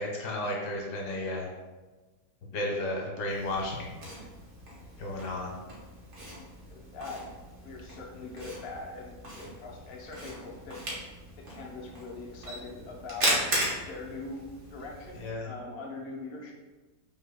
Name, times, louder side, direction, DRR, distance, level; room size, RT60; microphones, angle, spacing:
voice 1, 0.0-1.5 2.4-3.9 5.0-5.5 15.2-15.5, left 1 dB, 75° left, -1 dB, 1.5 m, -33 dB
Camera, 3.3-15.3, right 1 dB, 45° right, 1.2 m, -37 dB
voice 2, 6.7-7.2 7.6-10.8 11.4-13.3 13.7-16.5, left 3 dB, 55° left, -2 dB, 0.7 m, -42 dB
5.4 x 3.6 x 2.2 m, 1.2 s
omnidirectional pair, 1.8 m